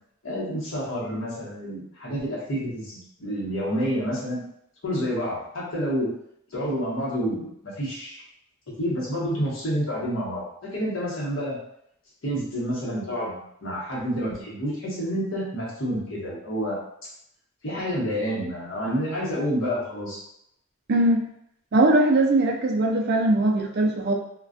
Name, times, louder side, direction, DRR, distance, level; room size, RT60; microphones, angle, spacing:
voice 1, 0.2-4.4 4.8-6.1 6.5-8.2 8.8-11.6 12.2-16.8 17.6-20.2, equal, 70° left, -6 dB, 1.0 m, -29 dB
voice 2, 20.9-21.2 21.7-24.1, right 2 dB, 50° right, 1 dB, 0.4 m, -20 dB
2.3 x 2.2 x 2.5 m, 0.73 s
head